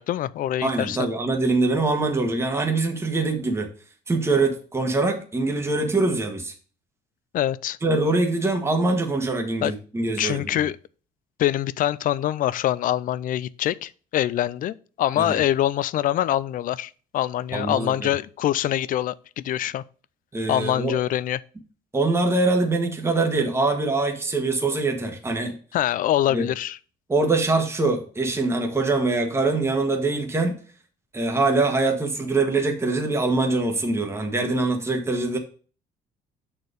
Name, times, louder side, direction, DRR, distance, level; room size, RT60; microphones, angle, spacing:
voice 1, 0.0-1.0 7.3-7.8 9.6-9.7 10.2-10.8 11.4-19.8 20.5-21.4 25.7-26.8, left 12 dB, 55° left, 0.4 m, -24 dB
voice 2, 0.6-3.7 4.1-6.5 7.8-10.6 15.2-15.4 17.5-18.1 20.3-20.9 21.9-25.5 26.3-26.5 27.1-30.6 31.1-35.4, right 3 dB, 15° right, 1.3 m, -23 dB
6.3 x 4.4 x 4.9 m
cardioid pair, 110°, 17 cm